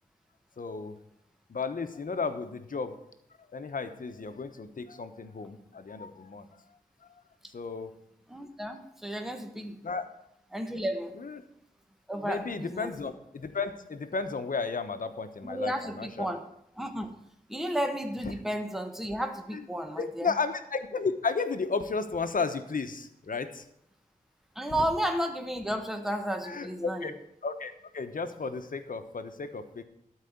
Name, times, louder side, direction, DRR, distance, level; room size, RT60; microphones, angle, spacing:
voice 1, 0.6-1.0 1.5-3.0 3.5-6.5 7.5-7.9 9.8-10.0 11.1-11.4 12.2-16.3 18.2-18.3 19.5-19.6 20.0-23.6 26.4-27.1 27.4-29.8, left 4 dB, 65° left, 9 dB, 1.0 m, -33 dB
voice 2, 8.3-9.8 10.5-11.2 12.1-12.9 15.4-16.4 16.8-17.1 17.5-20.3 24.5-27.1, equal, ahead, 6 dB, 1.3 m, -32 dB
12.5 x 4.9 x 8.1 m, 0.75 s
wide cardioid pair, 65°, 15 cm